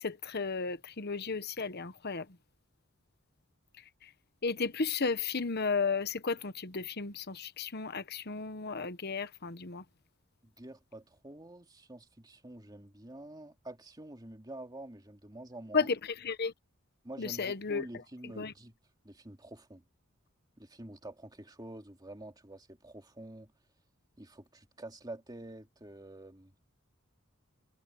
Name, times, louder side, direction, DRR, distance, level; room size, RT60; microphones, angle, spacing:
voice 1, 0.0-2.2 4.4-9.8 15.7-16.0 16.2-16.5 17.2-17.8 18.4-18.5, left 4 dB, 50° left, 1.1 m, -33 dB
voice 2, 10.4-15.9 17.0-18.8 19.0-19.8 20.6-23.5 24.2-26.5, right 1 dB, 20° right, 2.7 m, -47 dB
head